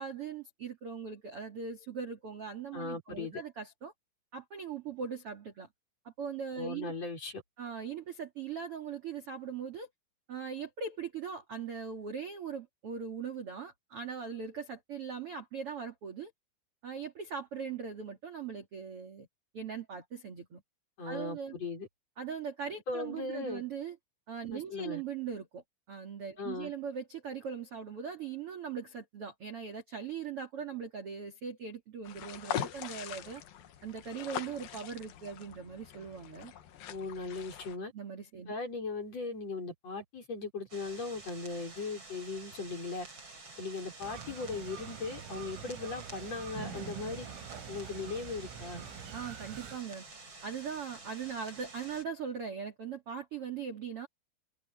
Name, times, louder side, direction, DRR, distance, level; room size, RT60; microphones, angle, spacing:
voice 1, 0.0-3.9 4.3-5.7 6.0-6.9 7.6-9.9 10.3-16.3 16.8-19.3 19.5-20.6 21.1-21.6 22.2-24.0 24.3-33.4 33.8-36.5 37.9-38.5 49.1-50.1 50.4-54.1, right 6 dB, 45° right, 2.0 m, -40 dB
voice 2, 2.7-3.4 6.6-7.4 21.0-21.9 22.9-23.6 24.5-25.0 26.4-26.7 36.9-37.9 38.5-43.1 43.6-47.3 47.7-48.8, left 3 dB, 30° left, 6.1 m, -38 dB
sound 1, 32.0-37.8, left 10 dB, 60° left, 2.6 m, -42 dB
sound 2, 40.7-52.0, right 3 dB, 25° right, 5.6 m, -50 dB
sound 3, 44.0-49.8, right 7 dB, 85° right, 5.8 m, -45 dB
omnidirectional pair, 5.8 m